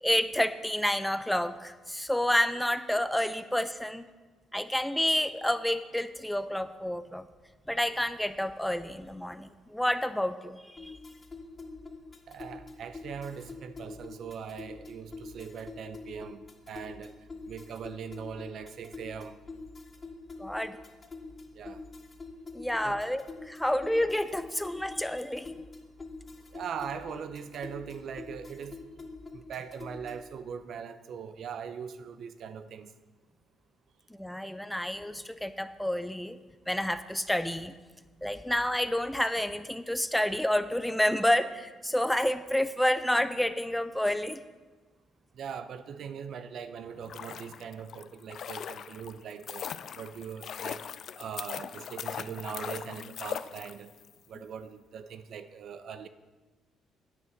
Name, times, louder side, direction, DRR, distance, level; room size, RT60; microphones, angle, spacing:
voice 1, 0.0-4.1 4.5-7.3 7.7-10.9 20.4-20.8 22.5-25.5 34.1-36.4 36.7-37.7 38.2-44.4, left 1 dB, 5° left, 12 dB, 0.6 m, -29 dB
sound 1, 10.8-30.3, left 3 dB, 35° left, 1.5 m, -45 dB
voice 2, 12.3-17.1 17.4-19.4 21.5-21.8 22.8-23.0 26.5-28.8 29.3-32.9 45.4-49.7 50.0-50.8 51.2-53.9 54.3-56.1, right 7 dB, 65° right, 11 dB, 0.7 m, -41 dB
sound 2, 46.9-54.1 54.3-54.4, left 8 dB, 60° left, 0.4 m, -40 dB
9.7 x 9.7 x 5.3 m, 1.3 s
supercardioid pair, 75°, 0 cm